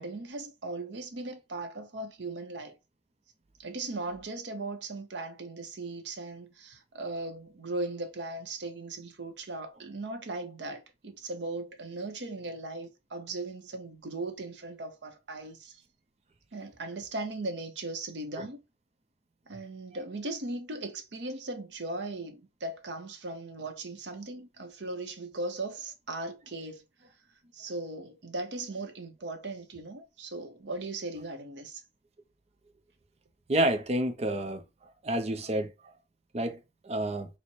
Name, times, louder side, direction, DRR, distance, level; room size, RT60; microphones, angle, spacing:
voice 1, 0.0-2.8 3.6-15.8 16.5-18.6 19.5-26.8 27.5-31.8, right 2 dB, 75° right, 0.8 m, -38 dB
voice 2, 33.5-34.6 35.0-35.7 36.3-36.6 36.8-37.3, right 1 dB, 35° right, 0.6 m, -28 dB
4.2 x 2.1 x 4.4 m
head